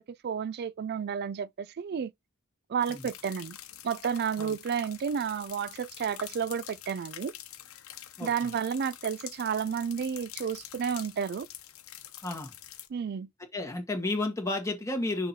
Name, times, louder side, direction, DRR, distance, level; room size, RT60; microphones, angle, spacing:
voice 1, 0.0-2.1 2.7-3.6 3.8-7.3 8.2-11.5 12.9-13.3, right 7 dB, 50° right, 0.4 m, -31 dB
sound 1, 2.8-12.9, left 11 dB, 80° left, 0.9 m, -46 dB
voice 2, 8.2-8.5 12.2-12.5 13.5-15.3, left 2 dB, 15° left, 1.9 m, -32 dB
6.5 x 2.9 x 5.4 m
head